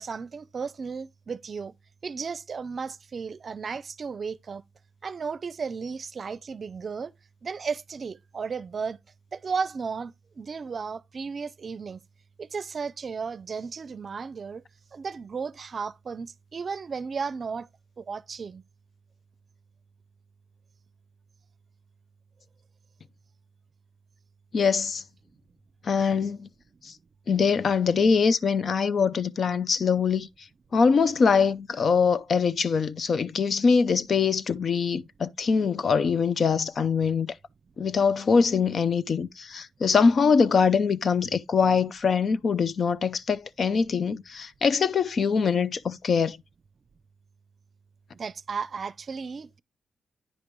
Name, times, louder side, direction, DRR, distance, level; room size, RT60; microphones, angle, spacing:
voice 1, 0.0-1.7 2.0-4.6 5.0-7.1 7.4-9.0 9.3-12.0 12.4-14.6 14.9-17.7 18.0-18.6 48.1-49.6, right 5 dB, 50° right, 0.5 m, -34 dB
voice 2, 24.5-25.0 25.8-26.5 26.8-26.9 27.3-30.3 30.7-37.3 37.8-46.4, left 5 dB, 55° left, 0.5 m, -23 dB
9.7 x 5.1 x 3.1 m
cardioid pair, 90°, 0 cm